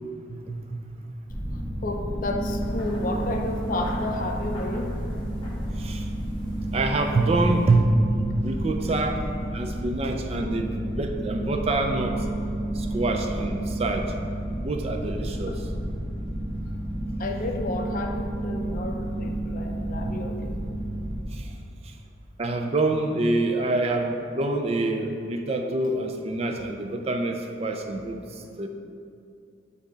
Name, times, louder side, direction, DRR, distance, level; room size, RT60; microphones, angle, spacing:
voice 1, 0.5-0.8 5.7-6.1 6.7-7.9 8.4-9.2 9.5-12.2 12.7-14.1 14.6-15.7 20.1-20.2 21.3-21.5 22.4-28.7, right 2 dB, 30° right, 4 dB, 0.4 m, -26 dB
sound 1, 1.3-21.2, right 1 dB, ahead, 0.9 m, -31 dB
voice 2, 1.8-4.9 15.5-15.6 17.2-20.5, left 2 dB, 45° left, 3 dB, 0.5 m, -32 dB
sound 2, 2.6-7.7, left 1 dB, 25° left, 1.2 m, -47 dB
8.1 x 2.8 x 5.1 m, 2.5 s
head